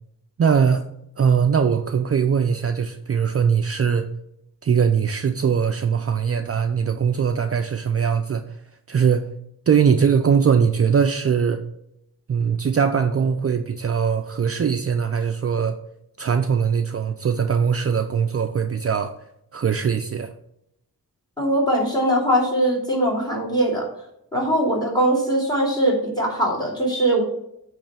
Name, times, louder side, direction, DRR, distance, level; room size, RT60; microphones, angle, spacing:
voice 1, 0.4-0.9 1.2-4.1 4.6-8.6 8.9-9.3 9.7-11.6 12.3-15.8 16.2-19.1 19.5-20.3, right 6 dB, 40° right, 7 dB, 0.5 m, -21 dB
voice 2, 21.4-23.9 24.3-27.2, right 1 dB, 10° left, -1 dB, 2.8 m, -21 dB
8.7 x 3.3 x 6.7 m, 0.78 s
wide cardioid pair, 105°, 36 cm